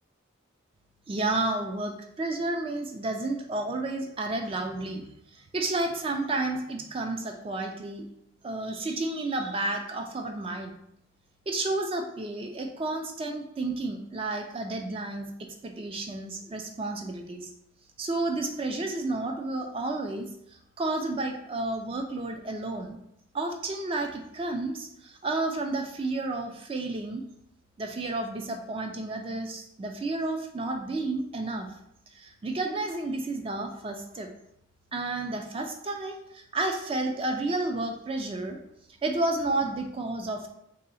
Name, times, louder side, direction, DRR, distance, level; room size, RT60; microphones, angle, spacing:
voice 1, 1.1-5.1 5.5-8.1 8.4-10.8 11.5-15.3 15.6-17.5 18.0-20.3 20.8-23.0 23.3-27.2 27.8-31.7 32.1-34.3 34.9-38.6 39.0-40.5, right 2 dB, 25° right, 4 dB, 0.3 m, -31 dB
2.7 x 2.7 x 4.1 m, 0.76 s
head